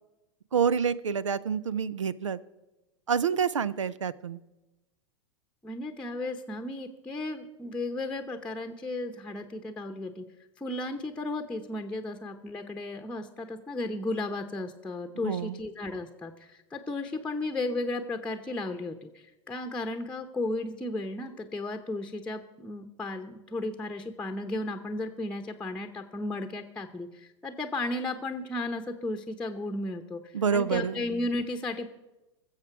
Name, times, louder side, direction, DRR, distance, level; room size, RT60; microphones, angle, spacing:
voice 1, 0.5-2.4 3.1-4.4 15.2-15.6 30.3-30.9, right 7 dB, 85° right, 19 dB, 0.6 m, -27 dB
voice 2, 5.6-10.2 10.6-31.9, left 2 dB, 5° left, 4 dB, 0.9 m, -34 dB
21.0 x 7.5 x 4.6 m, 1.0 s
hypercardioid pair, 100°, 16 cm